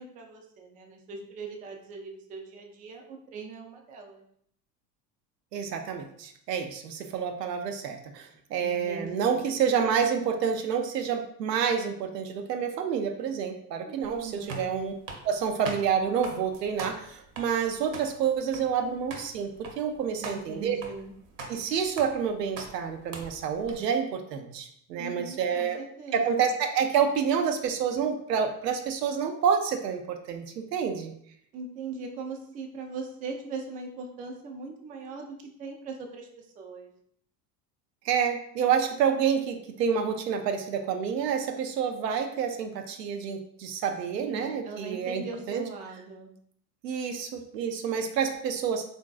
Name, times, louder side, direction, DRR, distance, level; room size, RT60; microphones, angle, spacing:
voice 1, 0.0-4.3 8.6-9.5 13.9-14.9 20.2-21.1 25.0-26.5 31.5-35.3 35.6-36.9 44.1-46.3, right 4 dB, 20° right, 2 dB, 0.3 m, -40 dB
voice 2, 5.5-14.9 15.2-20.8 21.5-25.8 26.1-31.1 38.0-45.6 46.8-48.8, right 7 dB, 85° right, 6 dB, 0.5 m, -28 dB
sound 1, 14.0-23.7, right 3 dB, 40° right, 0.7 m, -43 dB
3.6 x 2.6 x 2.3 m, 0.68 s
figure-of-eight pair, 70°, 48 cm